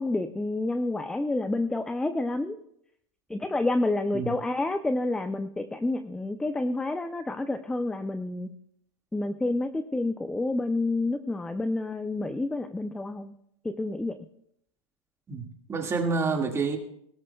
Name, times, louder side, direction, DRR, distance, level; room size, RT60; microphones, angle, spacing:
voice 1, 0.0-2.6 3.3-8.5 9.1-13.3 13.6-14.2, left 2 dB, 5° left, 9 dB, 0.4 m, -29 dB
voice 2, 15.3-16.8, right 4 dB, 15° right, 3 dB, 1.8 m, -28 dB
21.0 x 12.5 x 2.3 m, 0.73 s
supercardioid pair, 130°, 16 cm